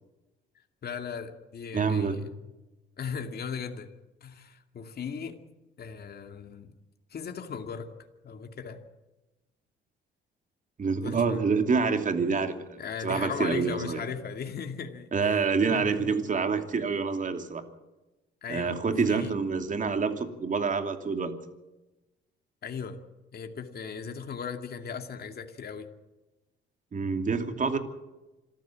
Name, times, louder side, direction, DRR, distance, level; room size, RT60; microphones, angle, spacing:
voice 1, 0.8-2.5 3.0-3.9 4.2-5.4 5.8-6.8 7.1-7.9 8.2-8.8 11.0-11.4 12.8-16.2 18.4-18.8 19.1-19.4 22.6-23.0 23.3-25.9, left 6 dB, 50° left, 5 dB, 2.4 m, -38 dB
voice 2, 1.7-2.2 10.8-14.0 15.1-17.6 18.5-21.3 26.9-27.8, right 5 dB, 40° right, 7 dB, 2.9 m, -27 dB
26.5 x 14.0 x 7.6 m, 1.0 s
cardioid pair, 90°, 20 cm